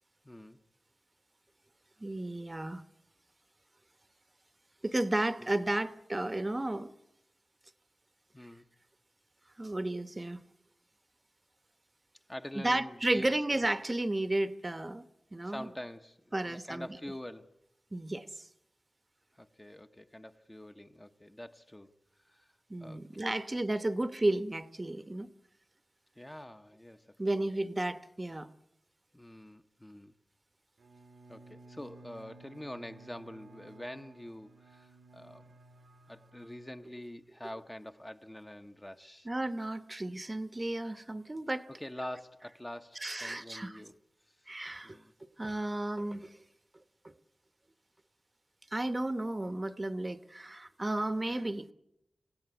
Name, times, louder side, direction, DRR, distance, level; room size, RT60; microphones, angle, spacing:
voice 1, 0.2-0.6 5.4-5.5 8.3-8.7 12.3-13.7 15.4-17.6 19.3-21.9 22.2-22.5 22.8-23.3 26.2-27.5 29.1-30.1 31.3-35.5 36.1-39.3 41.7-44.0 44.8-45.1, left 1 dB, 15° left, 1.0 m, -46 dB
voice 2, 2.0-2.8 4.8-6.9 9.6-10.4 12.6-15.0 15.3-15.7 16.3-17.0 17.9-18.3 22.7-25.3 27.2-28.5 39.2-41.7 43.0-43.8 44.5-45.0 45.4-46.3 48.7-51.7, right 1 dB, 25° right, 1.0 m, -33 dB
Bowed string instrument, 30.8-37.4, right 2 dB, 90° right, 1.6 m, -56 dB
26.0 x 16.5 x 8.2 m
wide cardioid pair, 70°, 0 cm